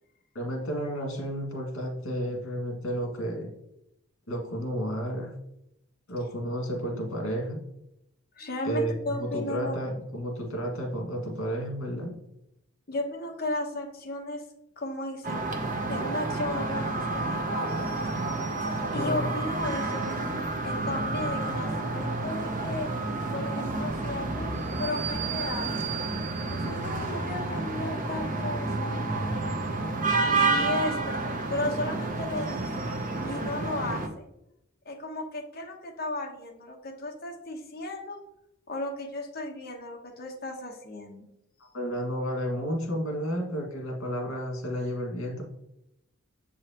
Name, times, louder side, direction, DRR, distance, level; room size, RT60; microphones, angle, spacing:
voice 1, 0.3-3.5 4.3-5.3 6.1-7.6 8.6-12.2 18.9-19.4 41.7-45.4, equal, 80° left, 0 dB, 2.1 m, -32 dB
voice 2, 8.4-9.8 12.9-14.4 14.8-15.4 15.9-18.0 18.9-21.7 21.9-22.9 23.3-25.9 26.5-28.9 30.2-31.2 31.5-32.7 33.2-34.2 34.8-38.2 38.7-41.3, left 2 dB, 45° left, 1 dB, 1.1 m, -35 dB
sound 1, 15.2-34.1, right 3 dB, 40° right, 0.7 m, -30 dB
7.2 x 4.8 x 2.9 m, 0.84 s
head